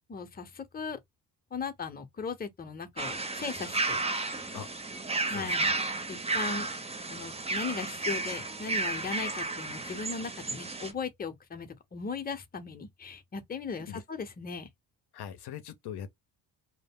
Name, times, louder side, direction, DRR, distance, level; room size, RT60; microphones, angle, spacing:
voice 1, 0.1-1.0 1.5-4.0 4.4-4.5 5.3-5.7 6.1-6.7 7.1-14.7, left 5 dB, 20° left, 0.8 m, -38 dB
sound 1, 3.0-10.9, right 3 dB, 15° right, 0.7 m, -33 dB
voice 2, 5.2-5.7 13.9-14.0 15.1-16.1, left 9 dB, 65° left, 0.7 m, -41 dB
2.2 x 2.0 x 3.5 m
supercardioid pair, 70°, 43 cm